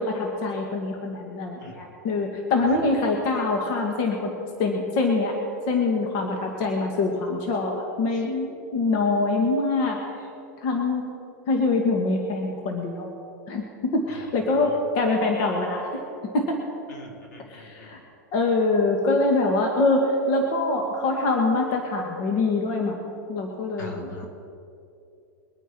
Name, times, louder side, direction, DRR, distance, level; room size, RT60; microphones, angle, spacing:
voice 1, 0.0-4.3 4.6-5.4 5.7-10.0 10.6-11.1 11.5-13.1 13.5-16.0 16.3-16.6 17.5-18.0 18.3-24.2, left 3 dB, 50° left, 1 dB, 2.1 m, -24 dB
voice 2, 16.9-17.9 23.8-24.3, left 1 dB, 85° left, -1 dB, 3.9 m, -43 dB
23.0 x 9.3 x 4.6 m, 2.6 s
supercardioid pair, 130°, 9 cm